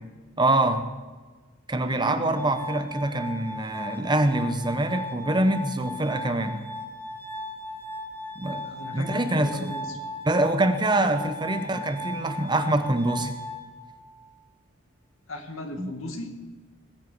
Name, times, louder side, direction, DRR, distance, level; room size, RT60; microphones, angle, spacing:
voice 1, 0.4-0.9 1.7-6.6 8.4-8.6 8.9-9.7 10.3-13.3 15.8-15.9, right 1 dB, 20° right, 8 dB, 1.0 m, -25 dB
voice 2, 1.9-2.6 8.4-10.0 11.0-11.1 15.3-16.3, left 1 dB, 85° left, 4 dB, 2.1 m, -37 dB
Glass, 2.3-14.3, equal, 10° left, 1.2 m, -37 dB
20.0 x 8.1 x 8.0 m, 1.3 s
head